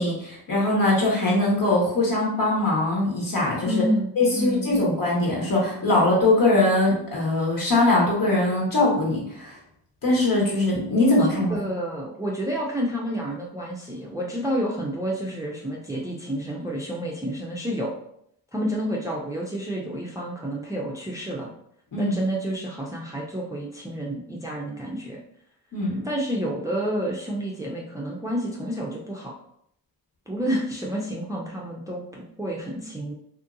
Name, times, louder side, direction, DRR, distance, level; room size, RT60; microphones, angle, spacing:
voice 1, 0.0-3.8 4.2-9.6 10.0-11.6 21.9-22.2 25.7-26.1, left 2 dB, 50° left, -3 dB, 1.5 m, -22 dB
voice 2, 3.7-4.9 11.3-17.9 18.5-21.5 22.0-25.2 26.0-29.3 30.3-33.1, equal, 10° right, -3 dB, 0.5 m, -29 dB
2.7 x 2.5 x 2.6 m, 0.71 s
supercardioid pair, 55°, 42 cm